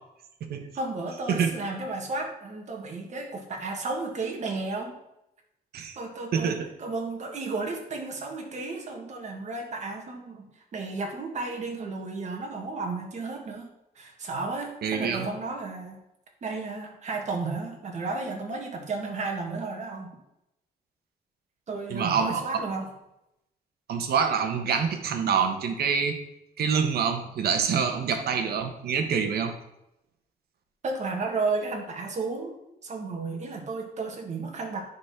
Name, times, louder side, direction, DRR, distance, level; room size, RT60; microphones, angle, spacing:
voice 1, 0.8-5.0 5.9-10.5 10.7-16.0 16.4-20.2 21.7-22.9 30.8-34.8, right 3 dB, 45° right, 2 dB, 1.8 m, -33 dB
voice 2, 6.3-6.7 14.8-15.3 21.9-22.4 23.9-26.2 26.6-29.5, right 6 dB, 90° right, 7 dB, 1.2 m, -26 dB
9.6 x 4.2 x 5.8 m, 0.86 s
wide cardioid pair, 145°, 16 cm